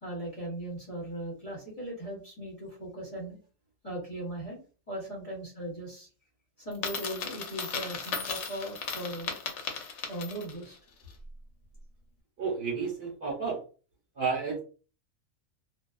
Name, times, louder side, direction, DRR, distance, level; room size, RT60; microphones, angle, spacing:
voice 1, 0.0-3.4 3.8-6.1 6.6-9.4 10.1-10.8, right 1 dB, 30° left, -5 dB, 0.8 m, -38 dB
Coin (dropping), 6.7-10.6, left 5 dB, 65° left, 0.8 m, -36 dB
voice 2, 12.4-13.6 14.1-14.6, right 5 dB, 50° right, -4 dB, 1.1 m, -31 dB
2.4 x 2.3 x 2.3 m, 0.37 s
omnidirectional pair, 1.5 m